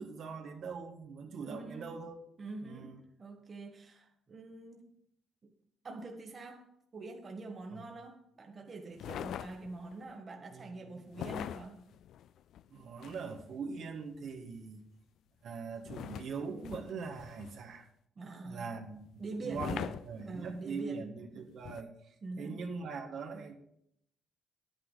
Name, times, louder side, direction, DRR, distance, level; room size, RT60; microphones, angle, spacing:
voice 1, 0.0-2.2 2.6-3.0 7.7-7.8 10.5-11.0 12.7-14.8 15.4-17.9 18.4-23.6, right 5 dB, 70° right, 2 dB, 1.6 m, -42 dB
voice 2, 1.4-1.9 2.4-4.9 5.4-5.5 5.8-11.8 18.2-18.7 19.2-19.9 20.2-21.2 22.2-22.7, right 3 dB, 40° right, 3 dB, 1.3 m, -45 dB
sound 1, 9.0-9.9 11.1-13.5 15.8-17.8 19.5-20.7 21.6-21.8, left 10 dB, 75° left, 0.3 m, -43 dB
10.0 x 9.0 x 3.9 m, 0.73 s
cardioid pair, 90°, 0 cm